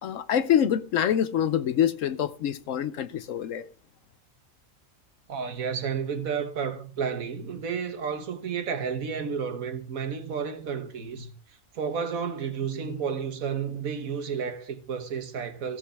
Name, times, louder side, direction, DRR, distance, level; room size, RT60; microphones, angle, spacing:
voice 1, 0.0-3.6, left 9 dB, 65° left, 1.0 m, -25 dB
voice 2, 5.3-11.3 11.7-15.8, right 6 dB, 70° right, 1.6 m, -31 dB
14.5 x 7.8 x 3.3 m
omnidirectional pair, 1.5 m